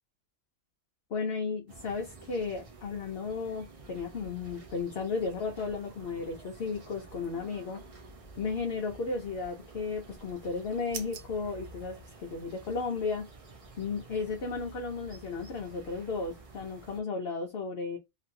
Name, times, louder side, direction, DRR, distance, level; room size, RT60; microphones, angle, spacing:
voice 1, 1.1-7.8 8.4-13.3 13.8-18.0, left 4 dB, 55° left, 0.8 m, -34 dB
sound 1, 1.7-17.0, right 3 dB, 45° right, 0.5 m, -51 dB
sound 2, 9.8-12.6, right 7 dB, 65° right, 0.8 m, -48 dB
3.0 x 2.6 x 2.6 m
omnidirectional pair, 1.4 m